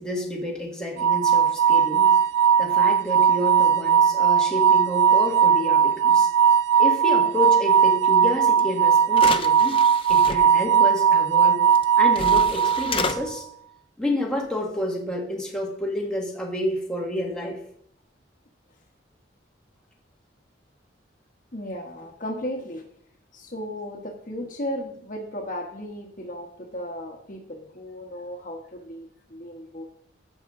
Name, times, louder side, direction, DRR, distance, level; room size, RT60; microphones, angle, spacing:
voice 1, 0.0-2.1 2.6-6.3 6.8-9.8 10.1-11.6 12.0-13.5 14.0-17.6, left 1 dB, 5° left, -2 dB, 1.8 m, -29 dB
sound 1, 1.0-13.2, right 7 dB, 80° right, 0.4 m, -19 dB
sound 2, 8.6-8.7 9.1-10.4 11.7-11.8 12.1-13.2, left 4 dB, 30° left, 0.6 m, -30 dB
voice 2, 21.5-22.8 23.3-29.8, equal, 45° left, 2 dB, 1.4 m, -35 dB
15.0 x 5.9 x 3.8 m, 0.67 s
head